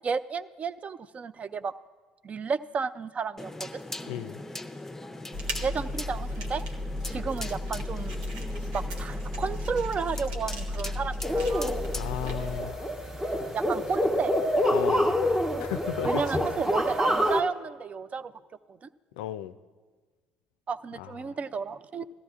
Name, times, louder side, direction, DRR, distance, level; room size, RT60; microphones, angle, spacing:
voice 1, 0.0-1.7 2.2-3.8 5.6-6.6 7.1-8.1 8.7-11.7 13.5-14.4 16.0-18.3 18.7-18.8 20.7-22.0, right 5 dB, 35° right, 15 dB, 0.4 m, -32 dB
sound 1, 3.4-12.6, left 2 dB, 10° left, 0.6 m, -41 dB
voice 2, 4.1-4.4 11.9-12.8 14.7-15.1 15.6-16.4 19.2-19.6 21.0-21.4, left 12 dB, 80° left, 12 dB, 0.3 m, -35 dB
sound 2, 5.3-12.6, left 1 dB, 80° right, 1.0 m, -34 dB
sound 3, 11.2-17.4, equal, 15° right, 1.1 m, -27 dB
17.0 x 13.5 x 2.4 m, 1.4 s
hypercardioid pair, 60°, 4 cm